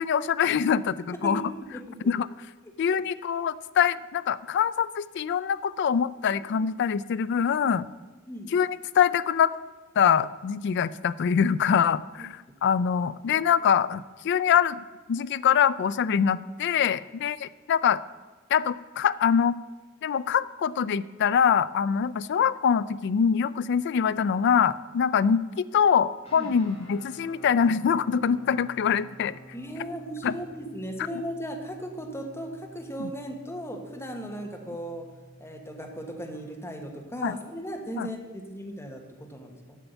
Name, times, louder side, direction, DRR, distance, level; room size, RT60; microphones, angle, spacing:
voice 1, 0.0-1.4 2.1-2.3 2.8-7.9 8.5-9.5 10.0-18.0 18.5-19.6 20.0-29.4 30.2-30.3 33.0-33.1 37.2-37.3 38.0-38.1, left 7 dB, 60° left, 17 dB, 0.3 m, -24 dB
sound 1, 26.2-36.4, right 1 dB, 30° left, 2.5 m, -50 dB
voice 2, 29.5-35.0 35.4-39.8, equal, 10° left, 2 dB, 1.3 m, -37 dB
8.3 x 5.6 x 7.9 m, 1.3 s
head